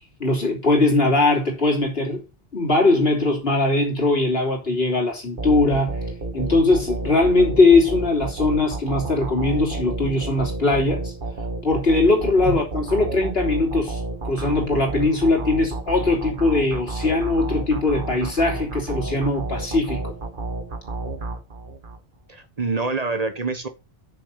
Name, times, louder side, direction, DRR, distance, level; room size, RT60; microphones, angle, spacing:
voice 1, 0.2-2.2 2.5-6.0 6.3-11.1 11.6-20.1, left 2 dB, 70° left, 3.6 m, -20 dB
sound 1, 5.4-22.0, right 2 dB, 55° right, 1.4 m, -31 dB
voice 2, 22.3-23.7, right 3 dB, 40° right, 1.0 m, -26 dB
7.0 x 6.6 x 5.6 m
omnidirectional pair, 1.0 m